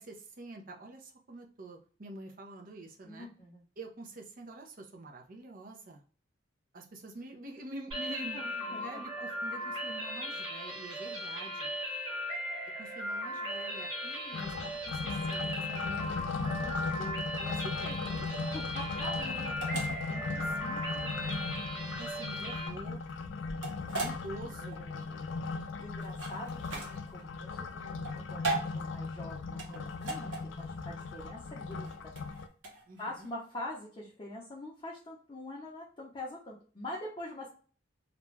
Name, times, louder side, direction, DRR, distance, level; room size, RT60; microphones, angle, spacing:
voice 1, 0.0-3.3 3.8-6.0 6.7-11.7 12.8-15.4 15.7-18.3 19.2-21.1 22.0-23.0 24.0-24.8 32.9-33.3, right 2 dB, 50° right, 2 dB, 0.6 m, -47 dB
voice 2, 3.0-3.6 8.3-9.0 18.5-19.5 23.9-24.1 24.6-32.1 33.0-37.5, left 1 dB, 30° left, -4 dB, 0.6 m, -44 dB
sound 1, 7.9-22.7, equal, 30° right, 1.2 m, -38 dB
sound 2, 14.3-32.5, left 4 dB, 90° left, 0.3 m, -38 dB
sound 3, 17.9-33.3, right 2 dB, 90° right, 0.9 m, -40 dB
2.5 x 2.2 x 3.1 m, 0.40 s
head